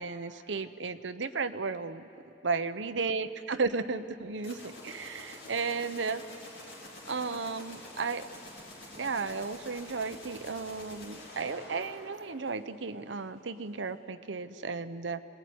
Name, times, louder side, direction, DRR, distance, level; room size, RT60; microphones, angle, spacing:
voice 1, 0.0-2.0 2.4-6.2 7.1-8.2 9.0-15.2, right 4 dB, 80° right, 10 dB, 0.9 m, -34 dB
sound 1, 4.4-13.0, left 1 dB, 85° left, 4.7 m, -48 dB
24.5 x 19.5 x 9.5 m, 2.9 s
head